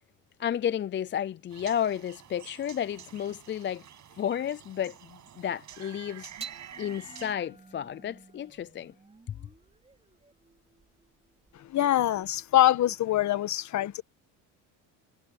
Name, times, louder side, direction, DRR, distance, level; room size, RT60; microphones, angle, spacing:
voice 1, 0.4-3.8 4.2-6.3 6.8-8.9 9.3-9.4, left 9 dB, 30° left, 0.5 m, -32 dB
sound 1, 1.5-7.4, right 10 dB, 50° right, 7.9 m, -49 dB
sound 2, 6.4-12.9, right 5 dB, 15° right, 4.4 m, -50 dB
voice 2, 11.6-14.0, left 13 dB, 50° left, 1.4 m, -24 dB
supercardioid pair, 100°, 38 cm